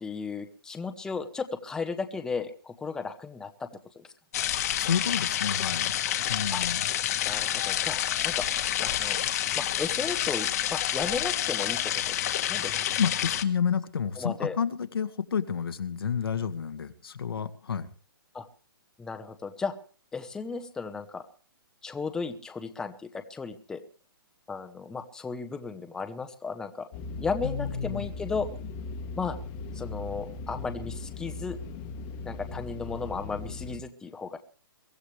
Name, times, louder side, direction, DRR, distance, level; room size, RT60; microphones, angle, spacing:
voice 1, 0.0-3.7 4.0-4.1 6.5-6.6 7.3-8.0 8.2-8.5 8.8-9.2 9.5-11.8 12.1-12.2 12.5-12.7 14.2-14.6 18.3-18.4 19.0-19.7 20.1-21.2 21.8-23.8 24.5-26.9 27.2-28.5 29.2-29.4 29.7-31.6 32.2-34.4, left 4 dB, 5° left, 8 dB, 1.0 m, -34 dB
sound 1, 4.3-13.4, left 11 dB, 45° left, 1.5 m, -28 dB
voice 2, 4.8-5.9 6.3-6.8 13.0-17.9 27.4-28.1, left 7 dB, 85° left, 8 dB, 2.0 m, -30 dB
sound 2, 26.9-33.8, left 3 dB, 25° left, 1.3 m, -38 dB
23.5 x 15.0 x 3.4 m, 0.39 s
hypercardioid pair, 165°, 12 cm